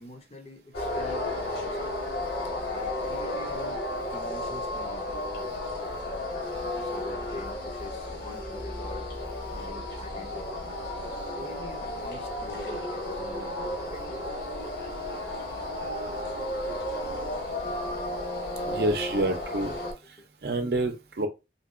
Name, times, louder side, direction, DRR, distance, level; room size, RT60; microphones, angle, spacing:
voice 1, 0.0-2.0 2.7-6.2 6.8-9.1 9.5-10.9 11.4-14.2 17.1-17.2 20.2-20.3 20.6-20.7, left 1 dB, 35° left, 0.6 m, -44 dB
sound 1, 0.7-19.9, left 1 dB, 75° left, 1.3 m, -33 dB
voice 2, 18.6-19.7 20.1-20.2 20.4-21.3, right 2 dB, 60° right, 0.6 m, -28 dB
3.9 x 2.8 x 2.4 m
head